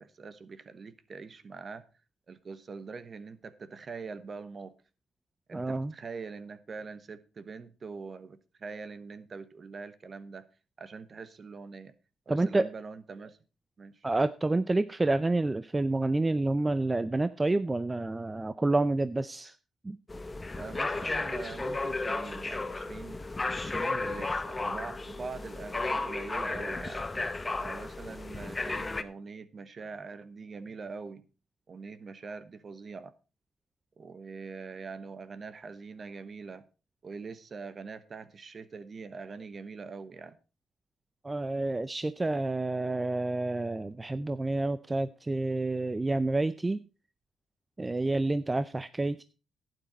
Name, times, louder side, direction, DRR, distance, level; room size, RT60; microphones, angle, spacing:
voice 1, 0.0-1.8 2.3-4.7 5.5-10.5 10.8-11.9 12.3-13.4 13.8-14.1 20.5-23.2 23.6-27.1 27.6-31.2 31.7-33.1 34.0-36.6 37.0-40.4, right 4 dB, 40° right, 1.1 m, -43 dB
voice 2, 5.5-5.9 12.3-12.7 14.0-19.6 19.8-20.0 41.2-46.8 47.8-49.2, right 2 dB, 20° right, 0.5 m, -29 dB
sound 1, 20.1-29.0, left 3 dB, 20° left, 1.0 m, -34 dB
11.5 x 9.4 x 4.3 m
cardioid pair, 90°, 0 cm